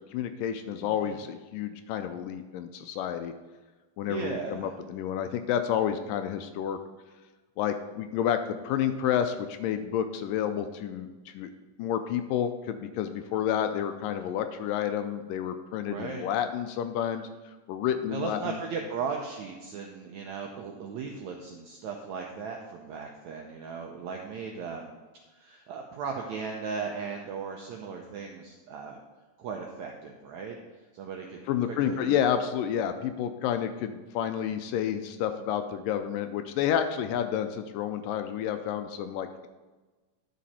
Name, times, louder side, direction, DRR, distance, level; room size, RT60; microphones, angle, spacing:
voice 1, 0.1-3.3 4.0-6.8 7.6-8.4 8.6-11.1 11.3-11.5 11.8-17.3 17.7-18.6 31.5-39.5, left 9 dB, 80° left, 8 dB, 2.1 m, -30 dB
voice 2, 0.8-1.2 4.1-4.7 15.9-16.2 18.1-24.9 25.3-29.0 29.4-30.6 30.9-32.2, right 5 dB, 85° right, 2 dB, 1.6 m, -37 dB
11.5 x 6.3 x 4.2 m, 1.2 s
omnidirectional pair, 4.1 m